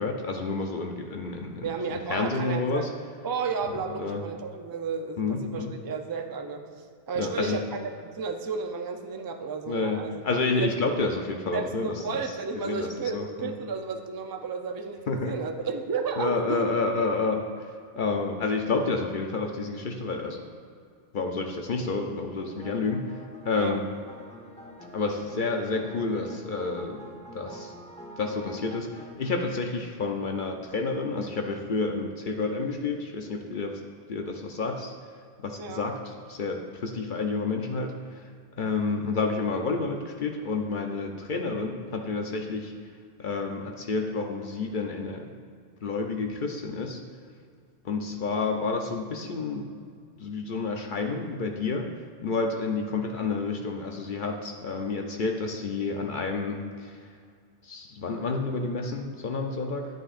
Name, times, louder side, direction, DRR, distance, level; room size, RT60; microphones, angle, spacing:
voice 1, 0.0-1.7 2.1-2.9 4.0-4.2 5.2-5.7 7.2-7.6 9.7-11.9 12.6-13.5 15.1-15.3 16.2-20.5 21.1-23.2 23.4-23.8 24.9-27.1 27.3-27.7 28.2-33.8 34.1-34.9 35.4-38.3 38.6-42.7 43.2-45.3 45.8-47.0 47.8-49.7 50.2-51.9 52.2-57.0 57.6-59.9, left 3 dB, 55° left, 3 dB, 0.8 m, -29 dB
voice 2, 1.6-2.9 3.2-10.2 10.6-10.7 11.5-16.8 23.5-23.8 35.6-35.8, right 5 dB, 30° right, 3 dB, 0.4 m, -33 dB
sound 1, 22.4-29.1, equal, 5° left, 0.8 m, -46 dB
11.5 x 7.7 x 2.5 m, 2.2 s
omnidirectional pair, 1.0 m